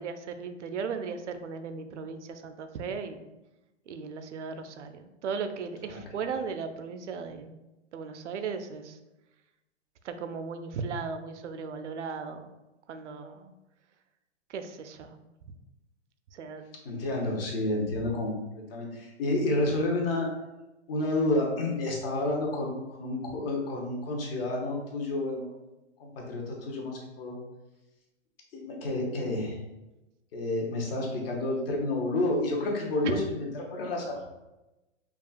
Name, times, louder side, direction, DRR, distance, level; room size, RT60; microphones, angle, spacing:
voice 1, 0.0-3.3 3.9-7.5 7.9-9.0 10.0-12.5 12.9-13.5 14.5-15.2 16.3-16.6 33.0-33.2, right 5 dB, 75° right, 8 dB, 0.6 m, -36 dB
voice 2, 16.8-20.3 20.9-25.5 26.0-27.4 28.5-29.6 30.3-34.2, left 2 dB, 50° left, -1 dB, 1.2 m, -30 dB
5.2 x 2.4 x 2.4 m, 1.0 s
hypercardioid pair, 135°, 36 cm